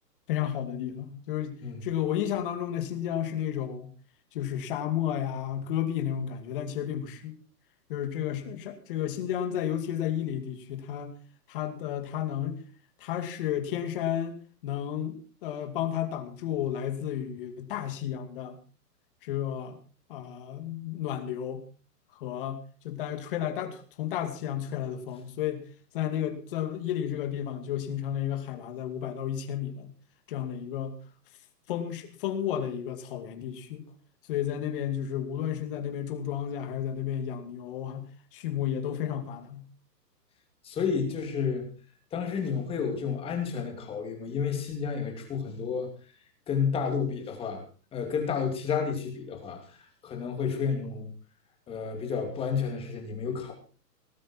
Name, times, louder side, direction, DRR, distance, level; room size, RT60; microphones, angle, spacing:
voice 1, 0.3-1.5 1.8-3.9 4.3-7.3 7.9-11.1 11.5-12.6 13.0-14.4 14.6-18.6 19.2-19.8 20.1-21.6 22.2-25.6 25.9-29.9 30.3-31.0 31.7-33.8 34.3-38.0 38.3-39.6, left 10 dB, 35° left, 8 dB, 2.4 m, -32 dB
voice 2, 40.6-41.7 42.1-45.9 46.5-47.6 47.9-49.6 50.0-51.1 51.7-53.5, left 6 dB, 10° left, 4 dB, 2.6 m, -30 dB
18.5 x 13.0 x 4.4 m, 0.38 s
hypercardioid pair, 165°, 48 cm